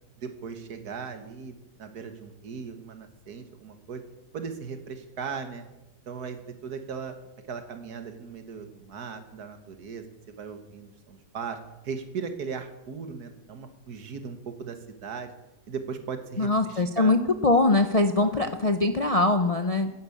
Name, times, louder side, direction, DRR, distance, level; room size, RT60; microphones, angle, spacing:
voice 1, 0.2-4.0 4.3-5.7 6.1-7.1 7.5-10.0 10.4-11.6 11.8-15.3 15.7-17.2 18.2-18.5, right 6 dB, 70° right, 8 dB, 1.9 m, -38 dB
voice 2, 16.4-19.9, left 2 dB, 40° left, 7 dB, 0.5 m, -22 dB
11.0 x 10.5 x 8.5 m, 0.98 s
omnidirectional pair, 1.7 m